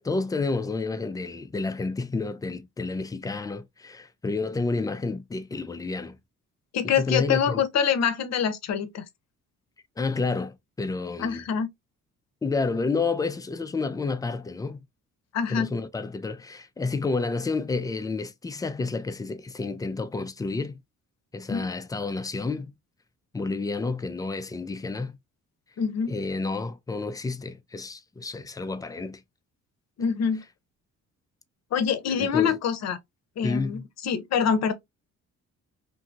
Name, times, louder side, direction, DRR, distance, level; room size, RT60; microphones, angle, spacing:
voice 1, 0.0-6.2 6.8-7.6 10.0-11.4 12.4-14.8 15.5-20.8 21.3-22.7 23.3-25.2 26.1-29.2 32.2-32.6 33.4-33.8, left 3 dB, 15° left, 0.3 m, -30 dB
voice 2, 6.7-9.0 11.2-11.7 15.3-15.7 21.5-21.7 25.8-26.2 30.0-30.4 31.7-33.0 33.4-34.7, left 7 dB, 60° left, 0.7 m, -25 dB
2.6 x 2.6 x 2.4 m
cardioid pair, 90°, 30 cm